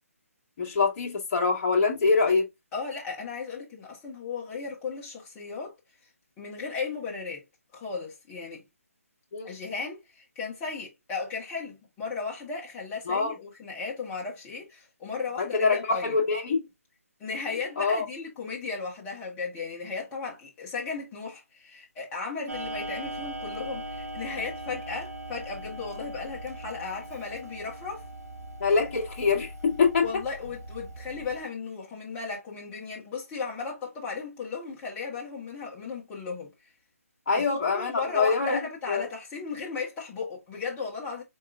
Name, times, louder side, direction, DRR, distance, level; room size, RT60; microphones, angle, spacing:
voice 1, 0.6-2.5 9.3-9.5 13.1-13.3 15.4-16.6 17.8-18.0 28.6-30.1 37.3-38.6 38.9-39.0, left 4 dB, 35° left, 1.9 m, -24 dB
voice 2, 2.7-5.7 6.4-7.4 7.7-8.6 9.4-16.2 17.2-28.1 30.0-36.5 37.4-41.2, left 4 dB, 15° left, 1.5 m, -35 dB
Clock, 22.5-31.4, right 1 dB, 85° right, 1.3 m, -40 dB
4.5 x 3.6 x 2.5 m
figure-of-eight pair, 155°, 8 cm